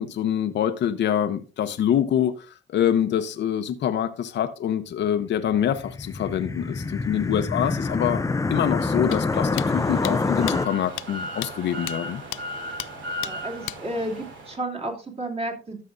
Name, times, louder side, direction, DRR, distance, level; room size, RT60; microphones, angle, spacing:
voice 1, 0.0-8.2 8.5-12.2, left 9 dB, 65° left, 0.8 m, -25 dB
sound 1, 5.5-10.7, left 3 dB, 15° left, 0.5 m, -26 dB
sound 2, 9.1-9.2 9.6-9.7 10.0-10.1 10.5-10.6 11.0-11.1 11.4-11.5 11.9-12.0 12.3-12.4 12.8-12.9 13.2-13.3 13.7-13.8, left 17 dB, 85° left, 0.4 m, -32 dB
sound 3, 9.3-14.6, equal, 70° right, 2.6 m, -36 dB
voice 2, 13.2-15.8, right 1 dB, 30° right, 2.8 m, -32 dB
13.0 x 6.6 x 2.5 m
cardioid pair, 90°, 20 cm